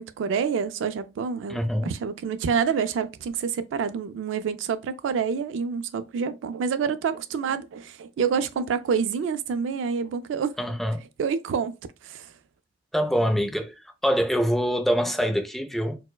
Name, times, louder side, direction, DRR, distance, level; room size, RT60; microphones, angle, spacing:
voice 1, 0.0-10.5 11.2-11.7 12.0-12.3, right 6 dB, 85° right, 0.3 m, -27 dB
voice 2, 1.5-1.9 10.6-11.0 12.9-13.7 14.0-16.0, equal, ahead, 0.4 m, -24 dB
4.3 x 2.1 x 2.3 m
head